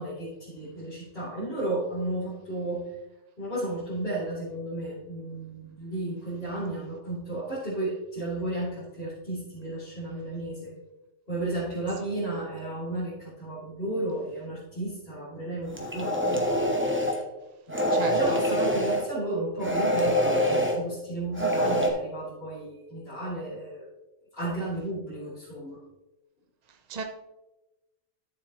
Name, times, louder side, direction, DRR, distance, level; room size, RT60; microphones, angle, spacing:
voice 1, 0.0-2.9 3.4-10.8 11.3-16.5 17.7-23.9 24.3-25.8, right 2 dB, 50° left, -11 dB, 3.3 m, -33 dB
sound 1, 15.7-17.2 17.7-19.1 19.6-20.8 21.3-21.9, equal, 10° right, 1.0 m, -25 dB
voice 2, 17.9-18.4 26.9-27.0, right 5 dB, 40° right, 5 dB, 0.7 m, -34 dB
12.5 x 7.3 x 3.0 m, 1.0 s
omnidirectional pair, 1.4 m